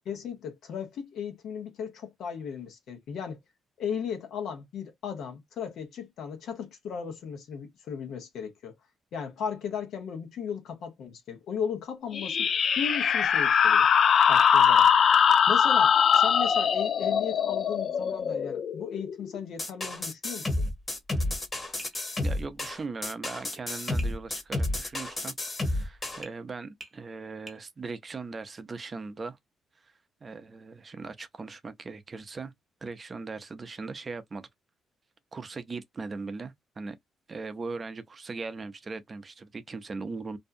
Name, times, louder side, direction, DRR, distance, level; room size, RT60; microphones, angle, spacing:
voice 1, 0.1-3.4 3.8-8.7 9.1-12.5 12.7-13.9 14.3-14.9 15.5-20.6, left 7 dB, 75° left, 0.9 m, -36 dB
sound 1, 12.1-19.4, left 7 dB, 55° left, 0.3 m, -22 dB
sound 2, 19.6-26.2, left 1 dB, 30° left, 1.1 m, -31 dB
Tap, 21.8-22.0 24.0-24.2 26.2-26.4 26.8-27.0 27.5-27.6, right 2 dB, 15° right, 0.9 m, -45 dB
voice 2, 22.2-29.4 29.8-29.9 30.2-32.5 32.8-34.5 35.3-37.0 37.3-40.4, right 4 dB, 35° right, 0.5 m, -39 dB
2.6 x 2.2 x 2.5 m
cardioid pair, 90°, 0 cm